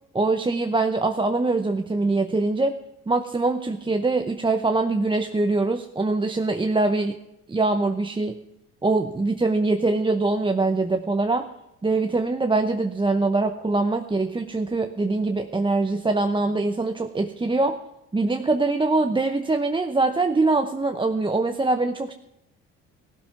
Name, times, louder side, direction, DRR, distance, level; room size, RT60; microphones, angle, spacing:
voice 1, 0.1-2.8 3.1-7.2 7.5-8.4 8.8-11.5 11.8-17.8 18.1-22.1, right 3 dB, 15° right, 6 dB, 0.9 m, -23 dB
16.0 x 12.0 x 5.9 m, 0.85 s
hypercardioid pair, 65°, 32 cm